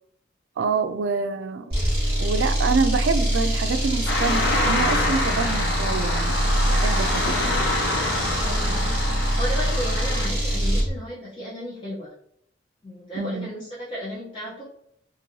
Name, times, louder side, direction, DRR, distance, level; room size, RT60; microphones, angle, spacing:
voice 1, 0.6-1.7 2.2-7.4 13.2-13.5, right 4 dB, 75° right, 10 dB, 0.3 m, -26 dB
sound 1, 1.7-10.9, right 1 dB, 30° right, 1.2 m, -24 dB
sound 2, 4.1-10.3, left 2 dB, 80° left, 0.6 m, -26 dB
voice 2, 8.4-8.9 9.4-12.1 12.8-14.6, equal, 25° left, -9 dB, 0.7 m, -34 dB
3.1 x 2.6 x 2.6 m, 0.72 s
head